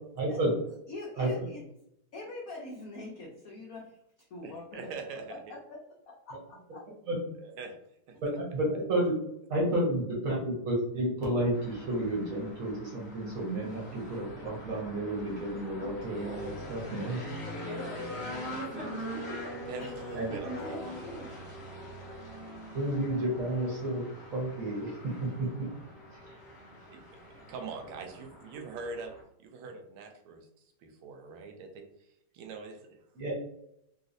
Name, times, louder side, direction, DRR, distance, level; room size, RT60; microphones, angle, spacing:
voice 1, 0.1-0.5 1.2-1.5 7.1-7.2 8.2-9.1 9.5-17.2 20.1-20.4 22.7-24.0 24.3-25.3 25.6-25.7 26.1-26.4 33.1-33.3, right 1 dB, 50° right, -3 dB, 1.2 m, -31 dB
voice 2, 0.9-1.6 2.1-4.0 4.3-4.9 5.5-6.6 19.8-21.3, left 2 dB, 85° left, -2 dB, 0.7 m, -43 dB
voice 3, 4.4-5.6 7.4-7.7 8.1-8.2 19.7-20.9 26.9-27.0 27.5-29.1 29.4-30.5 30.8-31.8 32.3-33.0, right 4 dB, 80° right, 5 dB, 1.4 m, -42 dB
sound 1, 11.5-29.2, equal, 45° left, 0.9 m, -43 dB
voice 4, 15.8-16.7 17.4-19.5, equal, 20° left, -8 dB, 0.4 m, -43 dB
3.9 x 2.4 x 2.6 m, 0.77 s
omnidirectional pair, 2.3 m